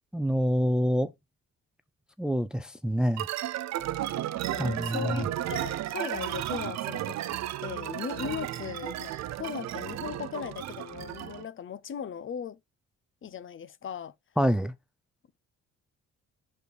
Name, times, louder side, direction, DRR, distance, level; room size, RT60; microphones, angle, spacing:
voice 1, 0.1-1.1 2.2-3.3 4.6-5.2 14.4-14.7, equal, 5° right, 0.5 m, -26 dB
sound 1, 3.2-11.4, right 13 dB, 65° right, 0.5 m, -34 dB
voice 2, 4.5-9.1 9.4-12.6 13.2-14.1, left 8 dB, 40° left, 0.6 m, -38 dB
5.1 x 4.2 x 4.8 m
cardioid pair, 90°, 30 cm